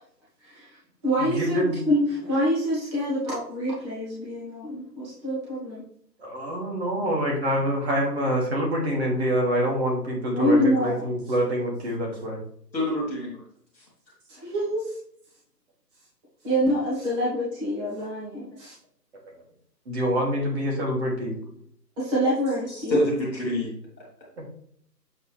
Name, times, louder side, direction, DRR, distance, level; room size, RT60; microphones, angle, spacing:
voice 1, 0.4-0.8 1.0-5.8 10.3-10.9 14.3-14.9 16.4-18.7 22.0-23.0, equal, 15° right, -8 dB, 2.3 m, -26 dB
voice 2, 1.2-1.8 6.2-12.4 19.9-21.4 24.4-24.5, equal, 40° right, -2 dB, 2.9 m, -26 dB
voice 3, 12.7-13.4 13.7-13.8 22.7-24.4, left 1 dB, ahead, -24 dB, 0.8 m, -28 dB
7.9 x 5.4 x 3.4 m, 0.65 s
figure-of-eight pair, 155°, 50 cm